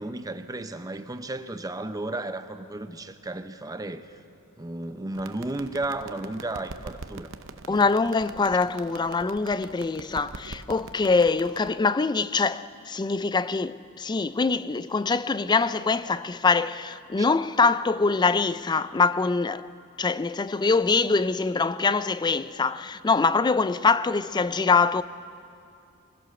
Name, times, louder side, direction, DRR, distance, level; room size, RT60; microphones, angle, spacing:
voice 1, 0.0-4.1 4.6-7.3 7.7-7.9 17.2-17.3, right 2 dB, 15° right, 0.7 m, -34 dB
sound 1, 5.1-11.7, right 3 dB, 65° right, 0.8 m, -44 dB
voice 2, 7.7-19.7 20.0-25.0, left 4 dB, 20° left, 0.4 m, -24 dB
23.5 x 16.0 x 6.9 m
head